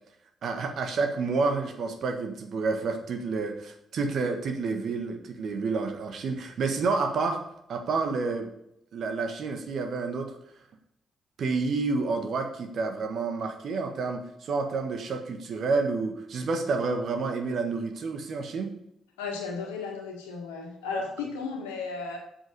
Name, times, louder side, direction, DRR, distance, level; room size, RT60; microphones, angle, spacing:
voice 1, 0.4-7.4 7.7-8.5 8.9-10.4 11.4-18.7 20.9-21.0, right 4 dB, 60° right, 5 dB, 1.5 m, -29 dB
voice 2, 19.2-22.2, left 5 dB, 85° left, 1 dB, 1.7 m, -34 dB
7.9 x 7.3 x 5.3 m, 0.79 s
hypercardioid pair, 40°, 0 cm